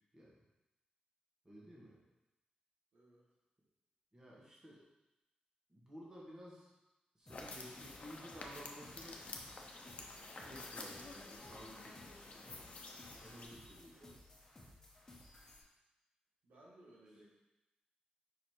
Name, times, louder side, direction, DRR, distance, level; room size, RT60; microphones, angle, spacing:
voice 1, 1.4-2.0 4.1-4.8 5.7-6.7 7.2-9.3 10.4-12.6 13.2-14.0 17.1-17.2, equal, 20° right, -5 dB, 1.7 m, -54 dB
voice 2, 2.9-3.2 13.9-14.2 16.4-17.2, right 1 dB, 85° right, -5 dB, 2.0 m, -61 dB
sound 1, 7.3-13.5, left 2 dB, 45° left, 0.9 m, -50 dB
sound 2, 7.3-15.6, left 1 dB, 20° left, 1.2 m, -59 dB
5.2 x 4.9 x 4.7 m, 0.99 s
wide cardioid pair, 115°, 3 cm